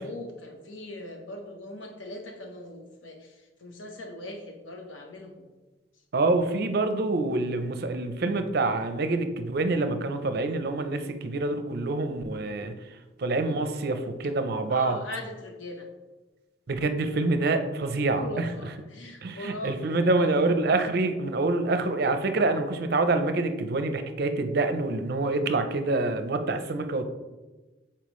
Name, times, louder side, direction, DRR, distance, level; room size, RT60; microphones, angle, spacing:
voice 1, 0.0-5.5 14.7-15.9 18.2-20.5, left 1 dB, 80° left, 2 dB, 1.0 m, -40 dB
voice 2, 6.1-12.7 13.2-14.9 16.7-18.5 19.2-27.1, right 2 dB, 55° right, 8 dB, 0.5 m, -26 dB
7.1 x 4.3 x 3.1 m, 1.2 s
head